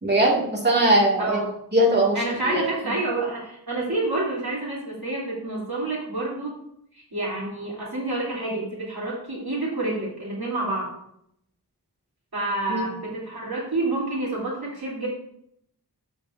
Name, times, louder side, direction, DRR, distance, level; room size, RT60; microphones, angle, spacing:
voice 1, 0.0-1.4 1.7-2.2 2.5-2.6 12.7-12.9, right 1 dB, 25° right, -3 dB, 2.1 m, -20 dB
voice 2, 2.1-6.6 6.9-10.9 12.3-15.1, right 2 dB, 65° right, -6 dB, 3.3 m, -28 dB
12.5 x 4.6 x 2.6 m, 0.72 s
wide cardioid pair, 40°, 39 cm